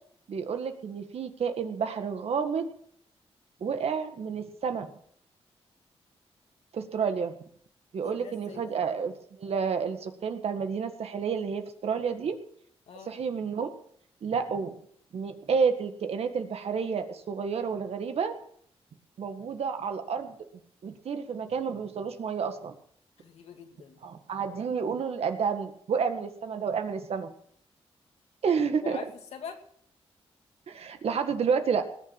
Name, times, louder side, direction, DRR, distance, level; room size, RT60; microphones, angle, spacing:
voice 1, 0.3-2.7 3.6-4.9 6.7-7.3 7.9-12.3 13.0-13.8 14.2-14.7 15.1-18.3 19.2-20.4 20.8-22.7 24.0-27.3 28.4-29.0 30.7-31.8, right 6 dB, 70° right, 7 dB, 1.7 m, -30 dB
voice 2, 8.0-8.8 12.9-13.1 23.2-24.0 28.8-29.6, left 6 dB, 85° left, 4 dB, 2.3 m, -43 dB
19.5 x 7.2 x 7.4 m, 0.65 s
cardioid pair, 95°, 11 cm